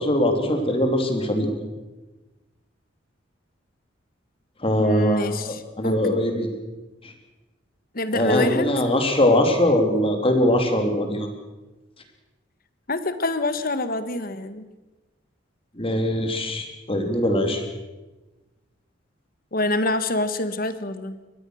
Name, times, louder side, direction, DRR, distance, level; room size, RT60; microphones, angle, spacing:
voice 1, 0.0-1.5 4.6-6.5 7.0-7.1 8.1-11.3 15.8-17.6, left 1 dB, 30° left, 5 dB, 3.3 m, -22 dB
voice 2, 4.8-6.0 7.9-8.7 12.9-14.7 19.5-21.2, left 2 dB, 45° left, 12 dB, 1.5 m, -26 dB
24.0 x 19.5 x 6.5 m, 1.2 s
head